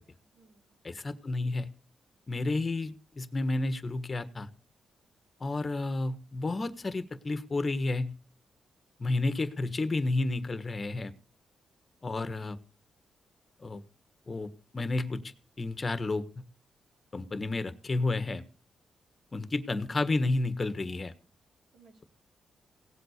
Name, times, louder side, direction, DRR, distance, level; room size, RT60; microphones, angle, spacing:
voice 1, 0.0-0.8 21.7-22.0, right 4 dB, 85° right, 2 dB, 3.5 m, -62 dB
voice 2, 0.8-1.7 2.3-4.5 5.4-8.1 9.0-11.1 12.0-12.6 13.6-13.8 14.3-15.2 15.6-16.4 17.1-18.4 19.3-21.1, left 2 dB, 30° left, 12 dB, 1.5 m, -31 dB
17.5 x 8.0 x 6.6 m, 0.37 s
cardioid pair, 105°, 0 cm